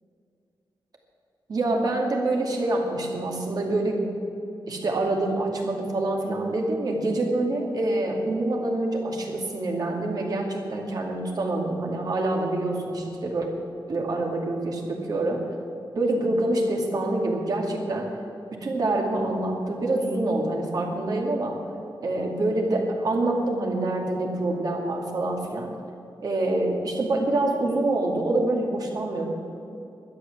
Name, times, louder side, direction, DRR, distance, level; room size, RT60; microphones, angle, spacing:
voice 1, 1.5-4.1 4.7-13.5 13.9-15.4 15.9-18.1 18.5-21.6 22.0-25.7 26.2-29.3, right 2 dB, 50° right, 0 dB, 2.4 m, -26 dB
12.5 x 10.5 x 7.3 m, 2.8 s
wide cardioid pair, 135°, 8 cm